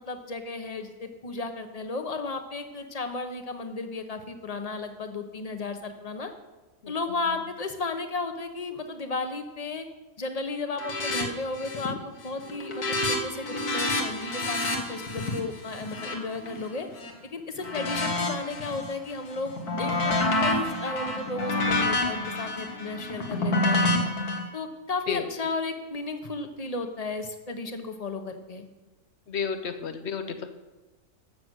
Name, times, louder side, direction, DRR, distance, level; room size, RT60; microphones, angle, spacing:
voice 1, 0.1-6.3 6.9-9.9 10.2-16.9 17.2-23.9 24.5-28.7, left 3 dB, 30° left, 7 dB, 1.0 m, -34 dB
sound 1, 10.8-11.2 11.5-12.0 12.3-17.1 17.6-18.9 19.3-24.4, left 2 dB, 85° left, 2.1 m, -28 dB
voice 2, 29.3-30.5, left 6 dB, 50° left, 8 dB, 1.1 m, -31 dB
12.5 x 7.9 x 6.3 m, 1.2 s
omnidirectional pair, 1.6 m